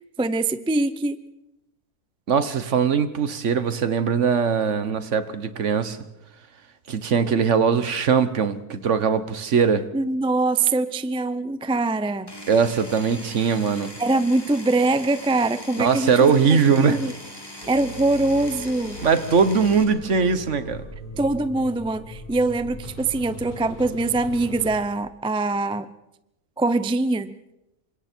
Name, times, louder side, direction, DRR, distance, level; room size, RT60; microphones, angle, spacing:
voice 1, 0.2-1.2 9.9-12.3 14.0-16.4 16.8-17.1 17.7-19.0 21.2-25.9 26.6-27.3, right 2 dB, 10° right, 13 dB, 0.3 m, -23 dB
voice 2, 2.3-6.0 6.9-9.9 12.5-13.9 15.8-17.0 19.0-20.8, right 6 dB, 55° right, 12 dB, 1.4 m, -21 dB
Power tool, 12.3-19.8, left 1 dB, 15° left, 3.3 m, -40 dB
sound 1, 17.6-24.8, left 1 dB, 45° left, 5.9 m, -39 dB
27.5 x 25.5 x 4.5 m, 0.87 s
omnidirectional pair, 1.6 m